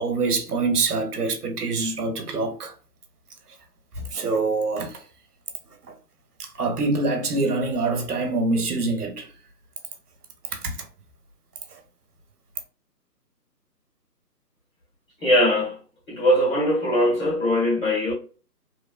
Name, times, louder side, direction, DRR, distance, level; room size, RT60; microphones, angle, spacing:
voice 1, 0.0-2.7 4.0-5.0 6.4-9.3 10.5-10.8 11.7-11.8, right 3 dB, 65° right, 0.8 m, -25 dB
voice 2, 15.2-15.8 16.1-18.1, equal, 55° left, 1.5 m, -21 dB
3.0 x 2.0 x 2.3 m
hypercardioid pair, 170°, 49 cm